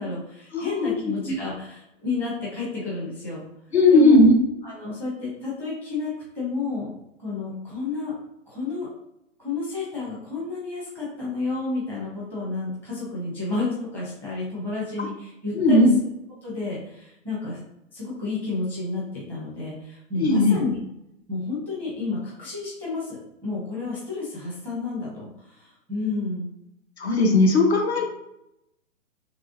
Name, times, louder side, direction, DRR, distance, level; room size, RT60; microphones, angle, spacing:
voice 1, 0.0-3.4 3.9-4.2 4.6-6.9 7.2-8.1 8.5-8.9 9.4-15.9 16.4-17.6 17.9-20.7 21.3-26.5, left 3 dB, 5° left, -7 dB, 0.7 m, -31 dB
voice 2, 0.5-0.9 1.3-1.4 3.7-4.3 15.5-15.9 20.2-20.6 27.0-28.0, left 2 dB, 55° left, 2 dB, 0.9 m, -17 dB
3.5 x 2.9 x 2.5 m, 0.83 s
figure-of-eight pair, 125°, 38 cm